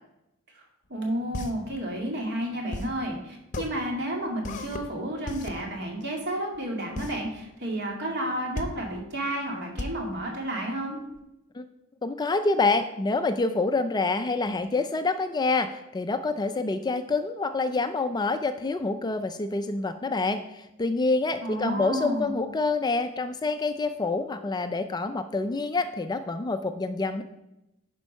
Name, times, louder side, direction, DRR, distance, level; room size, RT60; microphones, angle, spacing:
voice 1, 0.5-11.0 21.4-22.4, right 1 dB, 55° right, 0 dB, 2.2 m, -31 dB
sound 1, 0.9-11.2, left 1 dB, 35° left, 0.8 m, -37 dB
voice 2, 12.0-27.2, left 3 dB, 20° left, 9 dB, 0.4 m, -27 dB
10.5 x 4.6 x 5.3 m, 0.90 s
head